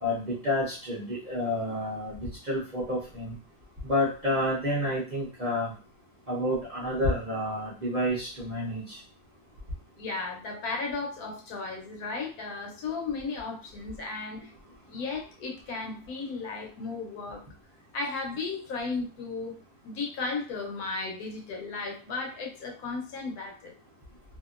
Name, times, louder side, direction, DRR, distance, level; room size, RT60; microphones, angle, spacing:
voice 1, 0.0-3.3 3.8-5.7 6.3-9.0, left 1 dB, 40° right, -8 dB, 0.6 m, -29 dB
voice 2, 10.0-14.4 14.9-17.4 17.9-19.5 19.8-23.7, left 3 dB, 70° left, 1 dB, 1.2 m, -35 dB
2.8 x 2.4 x 2.4 m, 0.36 s
omnidirectional pair, 1.7 m